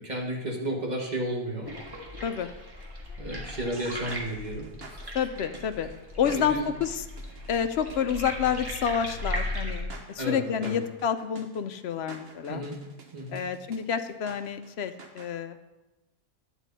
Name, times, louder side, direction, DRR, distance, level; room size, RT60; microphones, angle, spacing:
voice 1, 0.0-1.7 3.2-4.6 4.9-5.1 6.3-6.6 10.2-10.8 12.5-12.8 13.1-13.4, right 1 dB, 30° right, -1 dB, 1.7 m, -33 dB
sound 1, 1.6-9.8, left 1 dB, 15° right, 1.7 m, -37 dB
sound 2, 3.7-15.3, right 3 dB, 50° right, 1.2 m, -48 dB
voice 2, 5.1-5.9 6.2-7.0 7.5-12.6 13.3-15.6, left 7 dB, 65° left, 10 dB, 0.7 m, -29 dB
10.5 x 8.2 x 4.1 m, 1.1 s
omnidirectional pair, 1.4 m